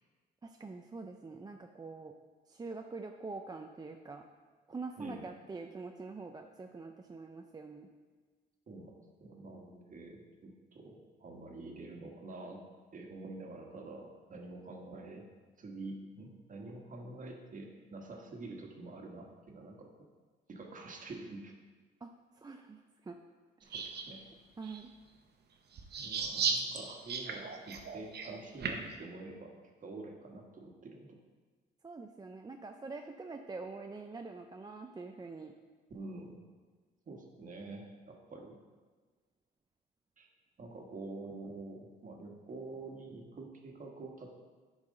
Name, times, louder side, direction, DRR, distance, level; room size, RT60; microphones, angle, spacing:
voice 1, 0.4-2.1 2.5-4.2 4.7-7.9 22.0-23.2 23.6-23.8 24.6-24.9 31.8-35.5, right 3 dB, 20° right, 4 dB, 0.4 m, -45 dB
voice 2, 8.7-12.6 12.9-15.3 15.6-20.1 20.5-21.5 23.6-24.3 24.6-24.8 26.0-29.5 29.8-31.2 35.9-36.5 37.1-38.6 40.2-40.3 40.6-44.3, right 2 dB, 40° right, 1 dB, 1.4 m, -47 dB
sound 1, 23.7-24.0 24.6-24.8 25.8-28.9, right 6 dB, 55° right, 0.9 m, -35 dB
10.5 x 4.8 x 3.7 m, 1.4 s
cardioid pair, 90°, 20 cm